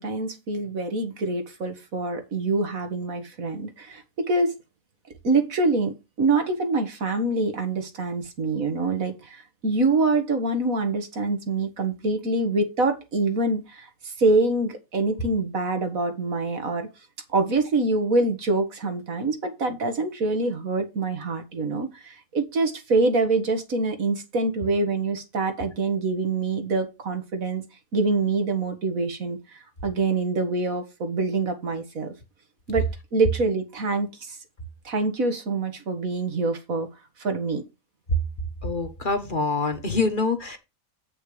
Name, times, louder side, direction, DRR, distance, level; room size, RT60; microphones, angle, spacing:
voice 1, 0.0-4.6 5.2-16.9 17.3-27.6 27.9-32.1 32.7-32.8 33.1-34.4 34.8-36.9 37.2-37.6, right 3 dB, 70° right, 2.1 m, -25 dB
voice 2, 38.6-40.6, left 3 dB, 35° left, 1.3 m, -25 dB
8.7 x 5.6 x 4.9 m
omnidirectional pair, 1.5 m